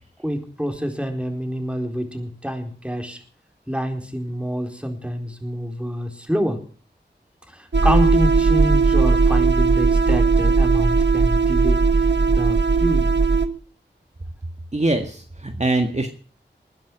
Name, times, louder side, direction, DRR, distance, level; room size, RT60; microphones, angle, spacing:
voice 1, 0.2-3.2 3.7-6.6 7.5-12.1 12.3-13.1, equal, 5° right, 4 dB, 4.2 m, -27 dB
sound 1, 7.7-13.5, right 4 dB, 70° right, 1.5 m, -17 dB
voice 2, 14.7-16.1, right 2 dB, 40° right, 4 dB, 1.8 m, -23 dB
20.5 x 10.5 x 6.2 m, 0.42 s
wide cardioid pair, 45°, 19 cm